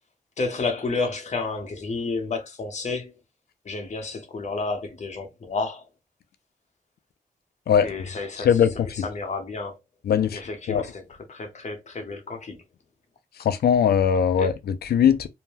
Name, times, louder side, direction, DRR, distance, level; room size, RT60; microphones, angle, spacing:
voice 1, 0.4-3.1 3.6-5.9 7.8-9.8 10.3-12.6 14.4-14.5, left 3 dB, 50° left, 0.9 m, -31 dB
voice 2, 10.1-10.4 10.7-10.8 13.4-15.3, left 8 dB, 85° left, 0.4 m, -20 dB
2.7 x 2.1 x 3.3 m
wide cardioid pair, 95°, 16 cm